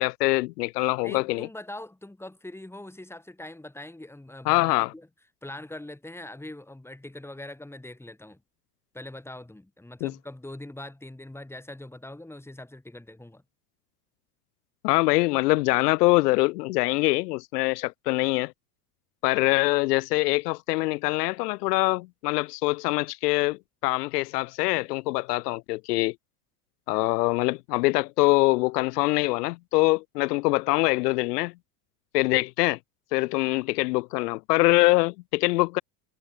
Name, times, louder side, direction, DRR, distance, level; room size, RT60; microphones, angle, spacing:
voice 1, 0.0-1.5 4.4-4.9 10.0-10.1 14.8-18.5 19.2-26.1 26.9-31.5 32.1-32.8 33.1-35.8, left 22 dB, 80° left, 1.1 m, -24 dB
voice 2, 1.0-5.1 5.4-8.4 8.9-13.4, left 1 dB, 5° left, 4.9 m, -42 dB
supercardioid pair, 105°, 47 cm